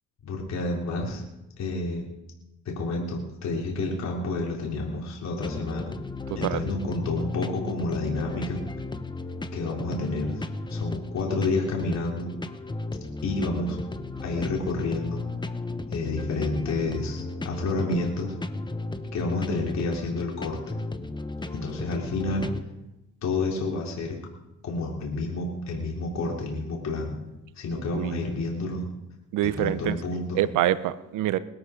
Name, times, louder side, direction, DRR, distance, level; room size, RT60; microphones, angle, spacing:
voice 1, 0.2-1.2 1.6-2.1 2.7-5.9 6.4-8.6 9.5-12.3 13.2-13.8 14.2-15.2 15.9-18.3 19.1-20.8 21.5-22.5 23.2-24.2 24.6-27.2 27.6-28.9 29.4-30.4, left 2 dB, 65° left, -2 dB, 3.7 m, -29 dB
sound 1, 5.4-22.6, left 2 dB, 15° left, 1.2 m, -35 dB
voice 2, 6.3-6.6 27.9-28.3 29.3-30.0 30.3-31.4, right 13 dB, 90° right, 15 dB, 0.9 m, -26 dB
21.0 x 13.0 x 5.1 m, 0.96 s
cardioid pair, 90°, 30 cm